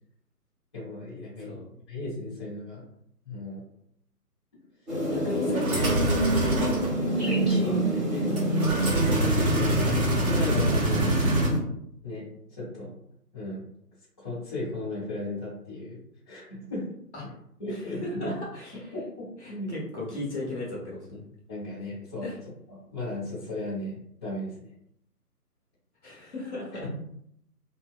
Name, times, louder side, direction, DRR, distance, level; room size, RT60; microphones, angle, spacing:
voice 1, 0.7-1.6 1.9-2.8 3.2-3.6 7.2-8.5 9.9-11.2 12.0-12.9 13.3-13.6 14.2-16.0 16.3-16.9 17.6-18.0 18.9-19.7 21.1-21.2 21.5-22.3 22.9-24.7, left 1 dB, 15° left, -12 dB, 0.9 m, -35 dB
voice 2, 1.4-1.7 5.1-6.0 6.4-6.8 7.6-7.8 8.8-10.0 17.1-17.2 17.7-18.9 19.4-21.2 22.2-22.4 26.0-26.9, left 1 dB, 45° left, -4 dB, 1.0 m, -37 dB
sound 1, 4.9-11.6, right 1 dB, 25° right, 1.4 m, -27 dB
sound 2, 5.5-6.9 8.4-11.5, right 1 dB, 60° right, 1.0 m, -26 dB
2.7 x 2.1 x 2.4 m, 0.72 s
figure-of-eight pair, 150°, 48 cm